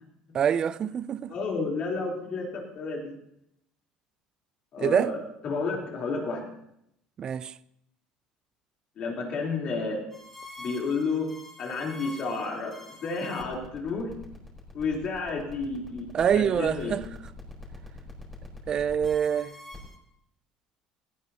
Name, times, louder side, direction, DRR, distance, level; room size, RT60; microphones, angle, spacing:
voice 1, 0.3-1.3 4.8-5.1 7.2-7.5 16.1-17.0 18.7-19.6, right 8 dB, 35° right, 0.4 m, -25 dB
voice 2, 1.3-3.1 4.7-5.2 5.4-6.5 9.0-10.0 10.6-11.3 11.6-14.2 14.7-17.0, left 4 dB, 45° left, 3.5 m, -31 dB
sound 1, 10.1-20.0, left 2 dB, 10° left, 4.3 m, -44 dB
18.0 x 16.5 x 2.9 m
cardioid pair, 140°, 2 cm